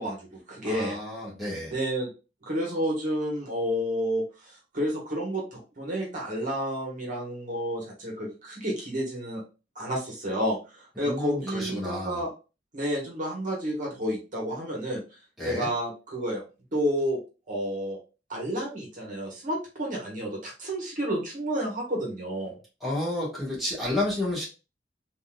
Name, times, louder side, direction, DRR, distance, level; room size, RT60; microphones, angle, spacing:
voice 1, 0.0-1.0 1.7-2.1 2.4-9.4 9.7-12.3 12.7-15.0 15.4-16.4 16.7-17.2 17.5-18.0 18.3-22.6, equal, 45° right, -1 dB, 1.1 m, -30 dB
voice 2, 0.6-1.7 11.0-12.2 15.4-15.7 22.8-24.5, left 1 dB, ahead, -6 dB, 1.2 m, -31 dB
3.6 x 2.6 x 2.2 m, 0.31 s
head